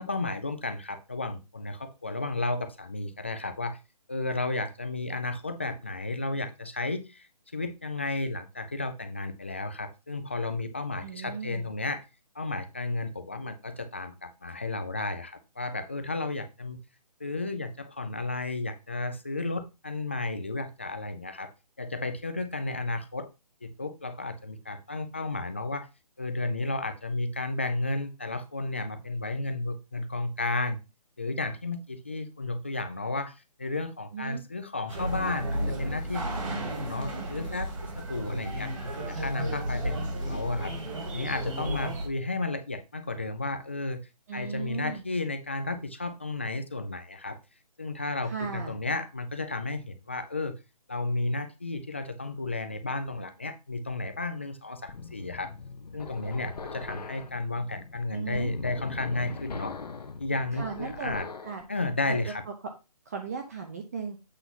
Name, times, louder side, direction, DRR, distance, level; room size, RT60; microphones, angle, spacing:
voice 1, 0.0-3.8 4.1-12.0 12.4-16.8 17.2-21.5 21.8-23.3 23.6-25.9 26.2-30.8 31.2-38.7 39.1-40.7 41.1-44.0 44.3-47.4 47.8-50.6 50.9-55.5 55.9-59.7 60.2-61.3 61.7-62.4, left 2 dB, 20° left, 9 dB, 0.3 m, -33 dB
voice 2, 11.0-11.7 34.1-34.4 44.3-45.0 48.3-48.8 58.1-58.5 60.5-61.1 61.4-61.6 62.1-62.2 63.1-64.2, right 5 dB, 25° right, 4 dB, 0.6 m, -36 dB
sound 1, 34.9-42.1, right 1 dB, 55° right, 2.1 m, -33 dB
sound 2, 54.9-61.6, left 4 dB, 80° left, 1.0 m, -41 dB
8.1 x 3.0 x 5.4 m, 0.27 s
hypercardioid pair, 170°, 20 cm